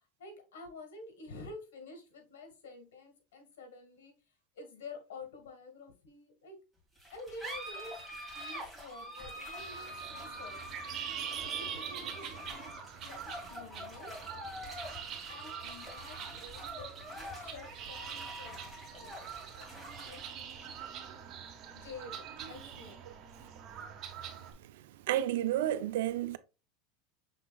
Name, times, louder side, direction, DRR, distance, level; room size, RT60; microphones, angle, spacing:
voice 1, 0.0-4.1 4.5-6.6 7.1-10.7 11.5-14.1 15.3-18.6 18.9-20.7 21.7-23.0, left 3 dB, 90° left, 1.7 m, -50 dB
sound 1, 7.0-23.9, equal, ahead, 1.9 m, -46 dB
sound 2, 9.6-24.5, right 8 dB, 40° right, 1.1 m, -44 dB
voice 2, 25.1-26.4, right 12 dB, 80° right, 0.4 m, -30 dB
6.0 x 3.7 x 2.2 m
supercardioid pair, 125°, 0 cm